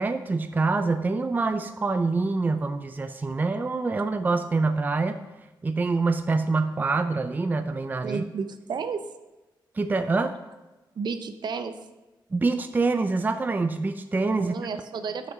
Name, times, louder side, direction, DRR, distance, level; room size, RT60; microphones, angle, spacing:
voice 1, 0.0-5.2 5.6-8.2 9.8-10.4 12.3-14.6, right 3 dB, 20° right, 8 dB, 0.4 m, -25 dB
voice 2, 8.0-9.0 11.0-11.7 14.4-15.3, right 5 dB, 60° right, 9 dB, 0.7 m, -32 dB
9.0 x 5.9 x 5.2 m, 1.1 s
cardioid pair, 110°, 8 cm